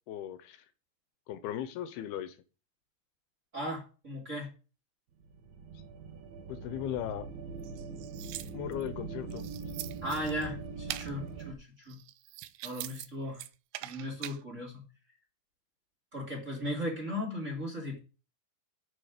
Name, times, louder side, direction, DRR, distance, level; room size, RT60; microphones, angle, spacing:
voice 1, 0.1-0.6 1.3-2.4 6.5-7.3 8.5-9.4, left 11 dB, 80° left, 2.6 m, -37 dB
voice 2, 3.5-4.5 10.0-11.6 11.9-12.0 12.6-13.4 13.8-14.8 16.1-18.0, left 1 dB, 20° right, 2.7 m, -36 dB
sound 1, 5.2-11.5, right 5 dB, 60° right, 2.1 m, -42 dB
sound 2, 7.6-8.9 9.3-10.5 10.9-11.1 11.8-13.1 13.3-14.4, right 15 dB, 90° right, 2.8 m, -42 dB
8.9 x 7.1 x 5.0 m
omnidirectional pair, 4.6 m